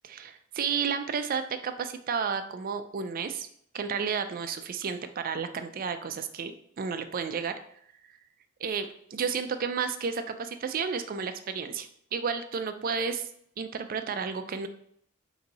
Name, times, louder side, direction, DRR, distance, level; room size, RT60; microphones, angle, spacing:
voice 1, 0.0-3.5 3.7-6.5 6.8-7.5 8.6-13.3 13.6-14.7, right 6 dB, 45° right, 8 dB, 0.4 m, -32 dB
4.0 x 2.7 x 4.0 m, 0.67 s
head